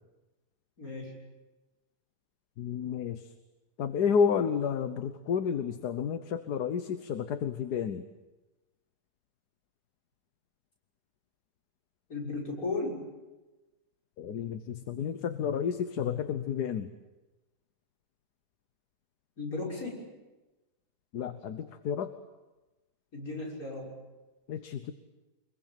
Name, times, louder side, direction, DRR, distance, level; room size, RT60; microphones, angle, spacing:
voice 1, 0.8-1.1 12.1-13.0 19.4-20.1 23.1-23.9, left 3 dB, 60° left, -1 dB, 6.8 m, -35 dB
voice 2, 2.6-3.3 3.8-8.0 14.2-16.9 21.1-22.1 24.5-24.9, left 7 dB, 75° left, 10 dB, 1.6 m, -31 dB
25.0 x 22.0 x 9.0 m, 1.1 s
omnidirectional pair, 1.7 m